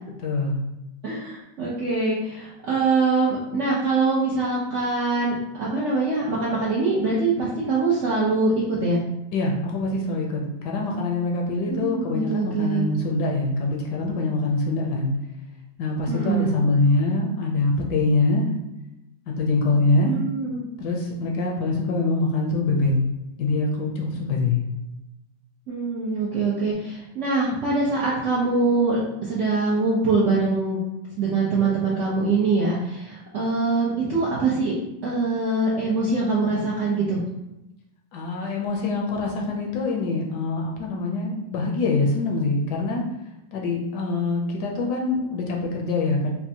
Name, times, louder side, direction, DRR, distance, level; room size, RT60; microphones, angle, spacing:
voice 1, 0.2-0.6 9.3-15.1 15.8-18.5 19.3-20.1 20.8-23.0 23.4-24.6 38.1-43.0 43.5-46.3, left 3 dB, 70° left, -1 dB, 1.1 m, -24 dB
voice 2, 1.0-9.0 11.7-12.9 16.1-16.6 20.0-20.6 25.7-30.8 31.2-34.7 35.0-37.2, right 3 dB, 65° right, -7 dB, 0.7 m, -23 dB
4.3 x 2.1 x 2.7 m, 0.92 s
omnidirectional pair, 2.0 m